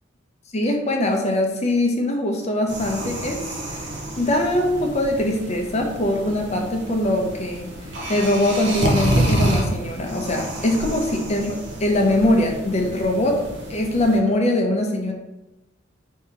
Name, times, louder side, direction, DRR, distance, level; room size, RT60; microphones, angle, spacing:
voice 1, 0.5-3.8 4.2-7.7 8.1-15.1, left 1 dB, 35° left, 2 dB, 0.6 m, -22 dB
sound 1, 2.7-14.2, right 1 dB, 55° right, 0.7 m, -28 dB
3.6 x 2.8 x 4.5 m, 0.95 s
head